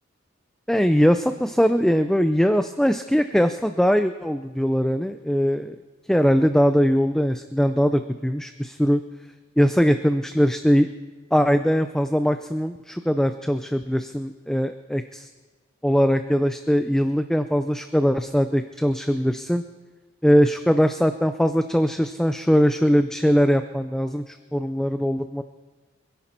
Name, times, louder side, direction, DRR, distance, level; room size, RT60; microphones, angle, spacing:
voice 1, 0.7-5.8 6.1-9.0 9.6-10.9 11.3-15.3 15.8-19.6 20.2-25.4, equal, 5° left, 8 dB, 0.4 m, -21 dB
25.5 x 11.0 x 4.4 m, 1.3 s
head